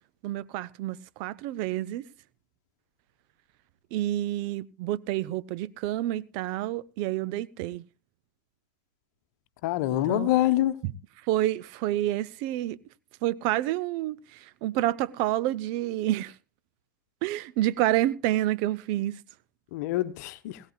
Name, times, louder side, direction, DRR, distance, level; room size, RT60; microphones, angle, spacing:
voice 1, 0.2-2.0 3.9-7.8 9.9-10.3 10.8-10.9 11.3-12.8 13.2-16.3 17.2-19.2, right 14 dB, 50° right, 0.6 m, -28 dB
voice 2, 9.6-10.8 19.7-20.6, left 14 dB, 60° left, 1.0 m, -25 dB
20.0 x 16.5 x 2.3 m
hypercardioid pair, 95°, 10 cm